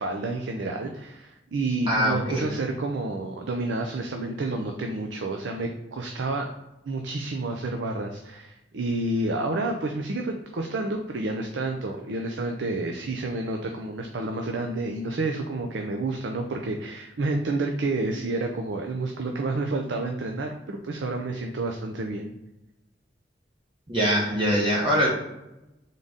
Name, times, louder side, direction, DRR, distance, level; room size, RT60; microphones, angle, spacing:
voice 1, 0.0-6.5 6.9-22.4, right 2 dB, 90° right, 4 dB, 0.5 m, -29 dB
voice 2, 1.9-2.5 23.9-25.1, equal, 30° right, -4 dB, 0.9 m, -23 dB
4.0 x 3.7 x 3.5 m, 0.94 s
head